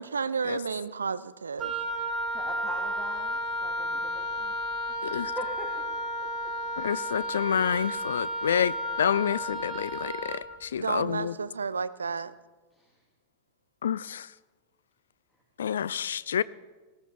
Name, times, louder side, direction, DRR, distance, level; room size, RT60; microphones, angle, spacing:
voice 1, 0.0-1.7 10.7-12.3, right 5 dB, 75° right, 0.5 m, -31 dB
Wind instrument woodwind instrument, 1.6-10.5, equal, 20° right, 1.7 m, -32 dB
voice 2, 2.3-4.5 5.1-5.8 6.4-6.5, equal, ahead, 1.8 m, -41 dB
voice 3, 6.8-11.3 13.8-14.3 15.6-16.4, left 8 dB, 65° left, 0.3 m, -28 dB
19.0 x 14.0 x 3.4 m
figure-of-eight pair, 90°, 0 cm